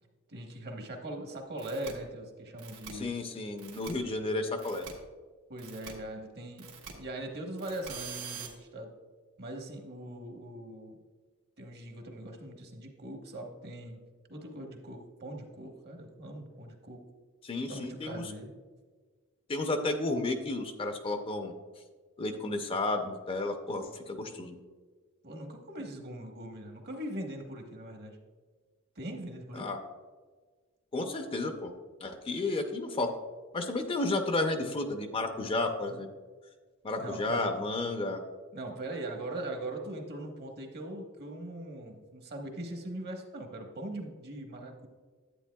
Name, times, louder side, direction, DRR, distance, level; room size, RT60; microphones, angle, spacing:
voice 1, 0.3-3.1 5.5-6.7 7.0-8.9 9.4-11.0 11.6-14.0 14.3-17.0 17.7-18.5 25.2-28.2 29.0-29.7 37.0-37.6 38.5-44.9, right 1 dB, 50° right, 3 dB, 1.1 m, -41 dB
sound 1, 1.6-1.9 2.6-2.9 3.6-3.9 4.6-4.9 5.6-5.9 6.6-6.9 7.6-8.5, right 7 dB, 75° right, 1.2 m, -44 dB
voice 2, 2.9-4.8 17.4-18.3 19.5-21.5 22.2-24.6 29.5-29.8 30.9-31.7 32.0-33.1 33.5-36.1 36.8-38.2, left 2 dB, 25° left, 5 dB, 0.5 m, -32 dB
10.0 x 8.7 x 2.3 m, 1.5 s
head